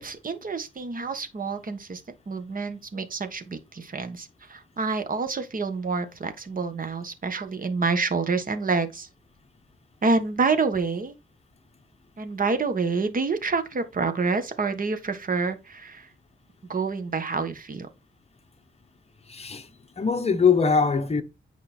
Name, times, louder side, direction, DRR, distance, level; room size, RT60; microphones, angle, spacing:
voice 1, 0.0-9.1 10.0-11.2 12.2-16.1 16.7-17.9, right 4 dB, 40° right, 1.4 m, -28 dB
voice 2, 19.3-19.7 20.0-21.2, left 5 dB, 30° left, 1.0 m, -22 dB
9.3 x 5.1 x 4.4 m
wide cardioid pair, 160°, 21 cm